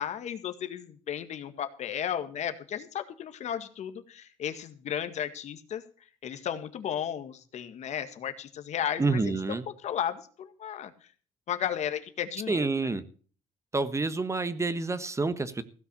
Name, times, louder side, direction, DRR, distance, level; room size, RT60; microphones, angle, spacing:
voice 1, 0.0-5.8 6.2-9.6 9.8-10.9 11.5-12.9, left 9 dB, 60° left, 10 dB, 1.7 m, -34 dB
voice 2, 9.0-9.6 12.5-13.0 13.7-15.6, right 3 dB, 20° right, 13 dB, 1.4 m, -28 dB
16.0 x 5.7 x 8.5 m, 0.42 s
supercardioid pair, 75°, 13 cm